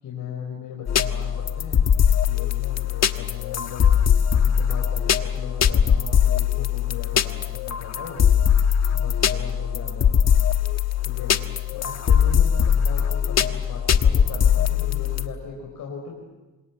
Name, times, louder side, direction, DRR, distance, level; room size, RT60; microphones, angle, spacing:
voice 1, 0.0-1.8 2.2-2.8 3.1-3.9 4.3-8.2 8.9-10.1 11.0-11.4 11.7-16.1, left 6 dB, 85° left, 0 dB, 5.0 m, -37 dB
sound 1, 0.9-15.3, left 8 dB, 60° left, 1.3 m, -21 dB
27.5 x 26.5 x 7.3 m, 1.1 s
cardioid pair, 110°, 31 cm